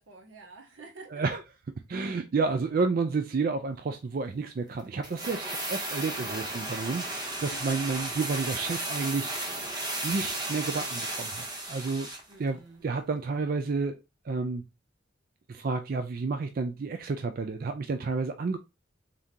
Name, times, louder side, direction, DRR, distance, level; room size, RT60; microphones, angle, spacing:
voice 1, 0.0-1.3 7.5-8.0 12.3-12.9, right 3 dB, 85° right, 1.3 m, -49 dB
voice 2, 1.9-9.6 10.0-12.1 12.4-14.0 14.3-14.6 15.5-18.6, right 4 dB, 50° right, 0.4 m, -30 dB
sound 1, 5.0-12.3 12.6-12.7, right 1 dB, 20° right, 0.8 m, -34 dB
3.6 x 3.6 x 2.7 m
head